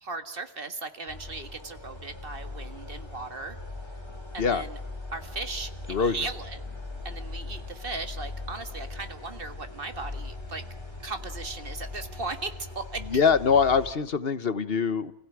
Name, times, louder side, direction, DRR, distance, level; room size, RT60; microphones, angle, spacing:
voice 1, 0.0-3.6 4.3-4.8 5.1-6.6 7.0-10.6 11.0-13.0, right 3 dB, 60° right, 9 dB, 2.0 m, -37 dB
sound 1, 1.1-13.9, left 2 dB, 25° left, 5.0 m, -40 dB
sound 2, 5.2-10.5, equal, 85° right, 5.1 m, -52 dB
voice 2, 13.1-15.1, left 6 dB, 65° left, 14 dB, 1.3 m, -23 dB
29.0 x 16.5 x 9.5 m, 0.80 s
omnidirectional pair, 1.0 m